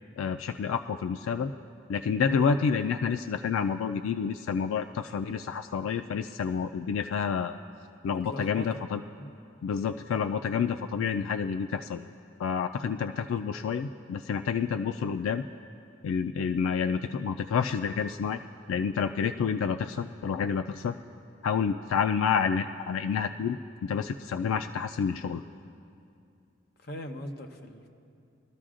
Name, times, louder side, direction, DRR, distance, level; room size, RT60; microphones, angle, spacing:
voice 1, 0.2-1.5 1.9-7.6 8.0-9.0 9.6-12.1 12.4-15.4 16.0-18.4 18.7-21.0 21.4-23.6 23.8-25.4, left 6 dB, 85° left, 8 dB, 0.3 m, -29 dB
voice 2, 8.0-8.8 9.2-9.3 26.8-27.9, equal, 50° left, 4 dB, 0.8 m, -40 dB
21.5 x 13.0 x 2.5 m, 2.5 s
head